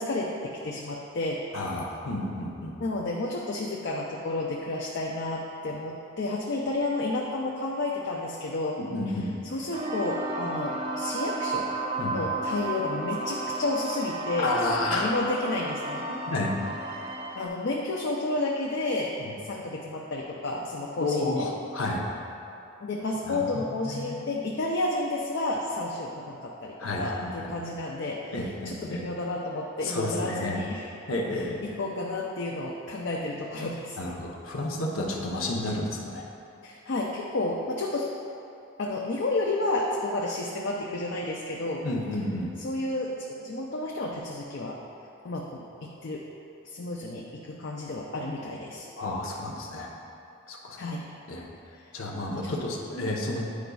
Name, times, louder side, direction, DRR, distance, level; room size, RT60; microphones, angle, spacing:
voice 1, 0.0-1.5 2.8-11.7 12.1-14.5 14.9-16.0 17.4-19.2 19.4-21.5 22.8-30.9 31.3-34.0 36.6-38.1 38.8-41.9 42.6-44.8 45.2-46.3 46.6-48.9 50.8-51.0 52.3-52.6, left 2 dB, 60° left, -2 dB, 0.4 m, -31 dB
voice 2, 1.5-2.7 8.8-9.3 12.0-12.2 14.4-15.1 16.3-16.5 19.2-19.3 21.0-22.0 23.3-24.2 26.8-27.5 28.3-29.0 29.8-30.6 31.1-31.6 34.0-36.2 41.8-42.5 49.0-49.9 50.5-50.8 51.3-51.4 51.9-53.5, left 2 dB, 90° left, -1 dB, 0.8 m, -31 dB
sound 1, 9.7-17.5, right 2 dB, 30° right, 0.4 m, -33 dB
9.3 x 5.0 x 2.3 m, 2.8 s
head